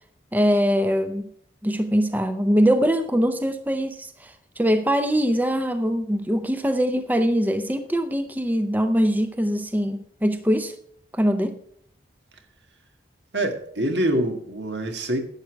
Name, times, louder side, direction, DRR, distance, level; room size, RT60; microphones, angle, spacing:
voice 1, 0.3-1.3 1.6-10.7 11.1-11.6, equal, 10° right, 0.5 m, -22 dB
voice 2, 13.3-15.2, right 1 dB, 75° right, 1.8 m, -25 dB
11.5 x 8.1 x 4.6 m
head